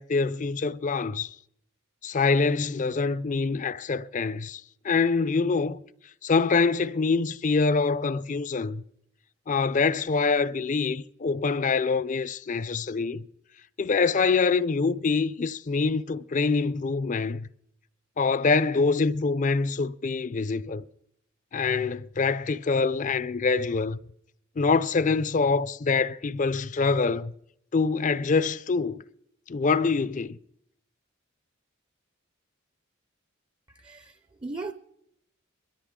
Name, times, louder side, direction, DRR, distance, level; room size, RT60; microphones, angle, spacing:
voice 1, 0.0-1.4 2.0-5.8 6.2-8.8 9.5-13.2 13.8-17.5 18.2-20.8 21.5-24.0 24.6-27.3 27.7-29.0 29.5-30.4, left 4 dB, 40° left, 0.5 m, -25 dB
voice 2, 33.7-34.7, right 3 dB, 20° right, 0.5 m, -38 dB
22.0 x 13.5 x 3.7 m
head